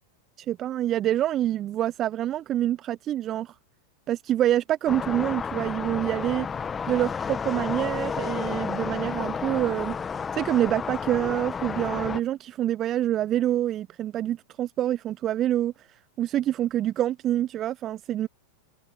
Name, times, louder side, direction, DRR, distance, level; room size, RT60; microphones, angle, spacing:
voice 1, 0.4-3.5 4.1-6.5 6.9-10.0 10.3-18.3, right 12 dB, 30° right, 0.9 m, -26 dB
sound 1, 4.9-12.2, left 6 dB, 20° left, 1.6 m, -31 dB
figure-of-eight pair, 90°, 0 cm